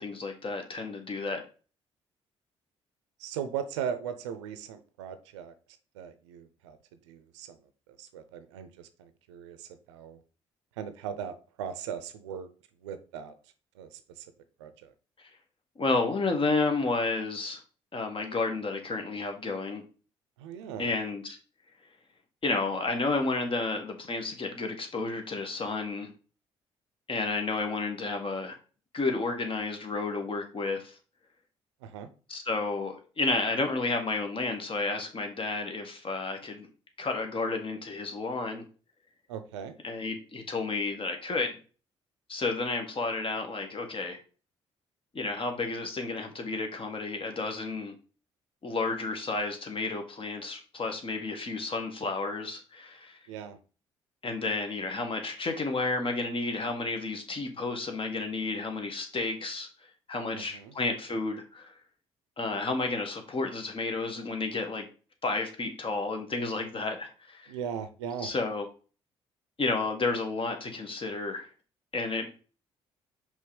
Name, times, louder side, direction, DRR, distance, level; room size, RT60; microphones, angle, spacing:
voice 1, 0.0-1.4 15.8-17.6 17.9-19.8 20.8-21.4 22.4-26.1 27.1-28.5 28.9-30.9 32.3-36.7 37.0-38.6 39.8-41.6 42.3-44.2 45.1-47.9 48.6-53.2 54.2-59.7 60.1-61.7 62.4-64.9 65.2-67.5 68.2-68.7 69.6-71.5 71.9-72.3, left 3 dB, 40° left, 1.6 m, -31 dB
voice 2, 3.2-5.5 5.9-6.8 7.1-7.6 8.0-10.2 10.8-12.5 12.8-13.3 13.8-14.3 14.6-14.9 20.4-20.9 31.8-32.1 39.3-39.7 53.3-53.6 60.3-60.7 67.5-68.3, right 8 dB, 80° right, 0.6 m, -38 dB
5.3 x 3.7 x 5.0 m
hypercardioid pair, 45°, 15 cm